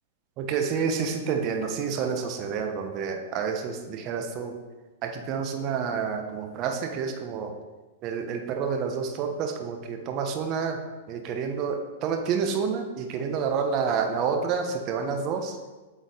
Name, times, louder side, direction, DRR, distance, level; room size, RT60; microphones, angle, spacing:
voice 1, 0.4-4.6 5.0-7.5 8.0-10.8 11.1-15.6, right 6 dB, 40° right, 5 dB, 1.0 m, -29 dB
8.3 x 3.9 x 5.0 m, 1.2 s
hypercardioid pair, 110°, 0 cm